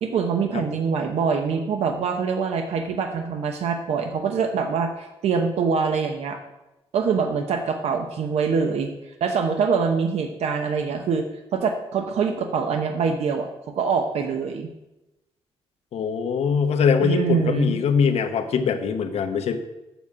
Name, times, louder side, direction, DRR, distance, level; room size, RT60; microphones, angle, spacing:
voice 1, 0.0-6.4 6.9-8.9 9.2-11.2 11.5-13.5 13.7-14.7 17.0-17.8, right 5 dB, 85° right, 5 dB, 0.8 m, -24 dB
voice 2, 15.9-19.6, left 6 dB, 80° left, 7 dB, 0.9 m, -22 dB
7.1 x 7.1 x 6.2 m, 0.96 s
wide cardioid pair, 140°, 11 cm